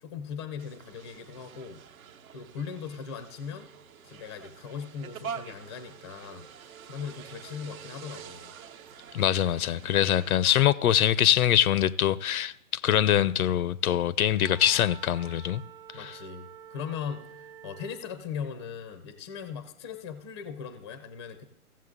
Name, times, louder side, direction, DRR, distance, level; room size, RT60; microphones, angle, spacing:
voice 1, 0.0-1.8 2.3-3.7 4.0-6.5 6.8-8.5 15.9-21.4, left 7 dB, 20° left, 0.4 m, -39 dB
sound 1, 0.6-10.6, right 7 dB, 65° right, 1.0 m, -46 dB
voice 2, 9.1-15.6 16.0-16.2, left 11 dB, 75° left, 0.5 m, -24 dB
Wind instrument woodwind instrument, 14.4-18.1, right 9 dB, 40° right, 0.9 m, -49 dB
15.0 x 7.4 x 3.7 m
hypercardioid pair, 145°, 44 cm